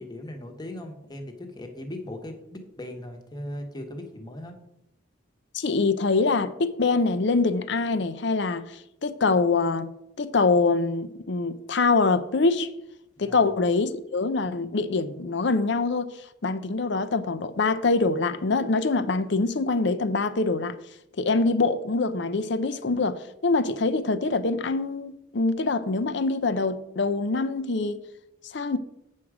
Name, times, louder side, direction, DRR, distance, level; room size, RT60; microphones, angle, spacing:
voice 1, 0.0-4.6 13.2-13.5, left 1 dB, 20° left, 1.1 m, -38 dB
voice 2, 5.5-8.6 9.0-9.9 10.2-12.7 13.2-16.1 16.4-20.7 21.2-28.0 28.5-28.8, left 3 dB, 60° left, 0.6 m, -24 dB
8.5 x 6.2 x 4.9 m
head